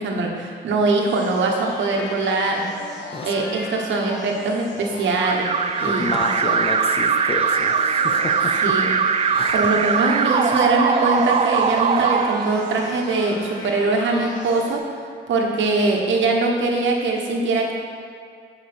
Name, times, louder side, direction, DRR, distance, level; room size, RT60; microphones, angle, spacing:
voice 1, 0.0-2.7 3.2-5.5 5.8-6.3 8.6-8.9 9.5-14.8 15.3-17.7, right 3 dB, 70° right, 0 dB, 1.4 m, -22 dB
sound 1, 1.1-14.8, left 3 dB, 70° left, 1.3 m, -37 dB
voice 2, 3.1-3.5 5.8-8.8 9.4-9.6 10.5-10.7, left 3 dB, 30° left, 3 dB, 0.9 m, -30 dB
Alarm, 5.2-13.1, right 6 dB, 30° right, 0.4 m, -21 dB
11.0 x 5.3 x 4.4 m, 2.1 s
cardioid pair, 90°, 20 cm